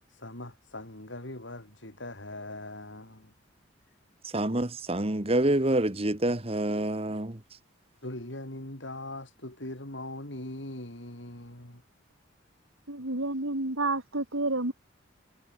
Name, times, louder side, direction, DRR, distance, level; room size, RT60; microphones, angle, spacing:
voice 1, 0.1-3.3 8.0-11.8, left 1 dB, 65° left, 5.6 m, -41 dB
voice 2, 4.2-7.4, right 1 dB, 30° right, 1.6 m, -27 dB
voice 3, 12.9-14.7, right 2 dB, 85° right, 4.0 m, -30 dB
head